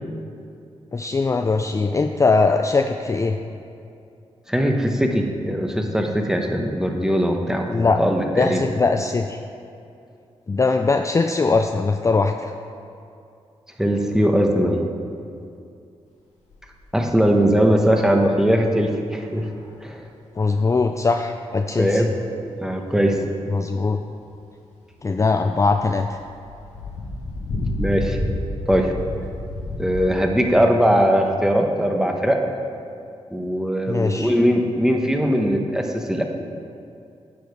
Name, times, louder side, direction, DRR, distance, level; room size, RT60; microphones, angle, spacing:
voice 1, 0.9-3.4 7.7-8.0 8.4-9.4 10.5-12.5 20.4-22.0 23.5-24.0 25.0-26.2 33.9-34.4, left 4 dB, 25° left, 5 dB, 0.4 m, -21 dB
voice 2, 4.5-8.6 13.8-14.8 16.9-19.5 19.8-20.0 21.8-22.1 22.6-23.2 27.8-28.2 28.7-28.9 29.8-32.4 33.3-36.2, equal, 5° right, 3 dB, 1.0 m, -20 dB
sound 1, 16.5-17.2 17.5-17.6 19.2-19.7 20.4-20.5 21.2-21.3 21.7-21.8 22.7-22.8 23.1-23.2 25.2-25.3 25.5-30.0, left 2 dB, 80° left, 1.2 m, -30 dB
9.2 x 4.9 x 4.7 m, 2.6 s
cardioid pair, 55°, 12 cm